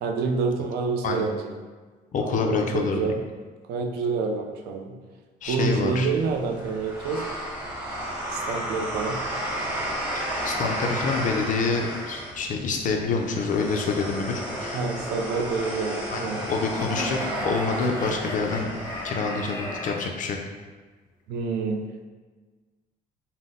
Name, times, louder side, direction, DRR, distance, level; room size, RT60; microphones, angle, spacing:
voice 1, 0.0-1.5 2.2-3.2 3.7-5.0 5.5-7.2 8.3-9.2 14.7-16.5 21.3-22.1, right 4 dB, 80° right, 4 dB, 0.6 m, -28 dB
voice 2, 2.1-3.0 5.4-6.1 10.1-14.8 16.1-18.7 19.0-20.4, left 4 dB, 50° left, 2 dB, 0.5 m, -27 dB
sound 1, 5.4-19.7, equal, 10° right, 1.2 m, -33 dB
sound 2, 16.7-20.0, left 1 dB, 20° left, 0.7 m, -35 dB
5.7 x 2.1 x 3.7 m, 1.4 s
cardioid pair, 125°, 17 cm